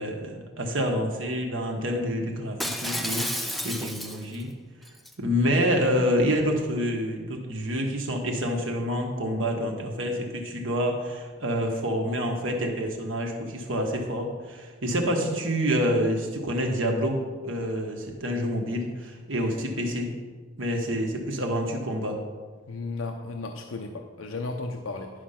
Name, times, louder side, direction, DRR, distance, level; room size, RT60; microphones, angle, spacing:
voice 1, 0.0-4.5 5.2-17.2 17.4-20.1 20.6-22.2, equal, 70° right, 2 dB, 1.5 m, -27 dB
Shatter, 2.6-4.4 4.8-5.1, equal, ahead, 0.4 m, -31 dB
voice 2, 22.7-25.1, left 3 dB, 85° left, 4 dB, 0.7 m, -34 dB
10.5 x 5.2 x 5.8 m, 1.4 s
head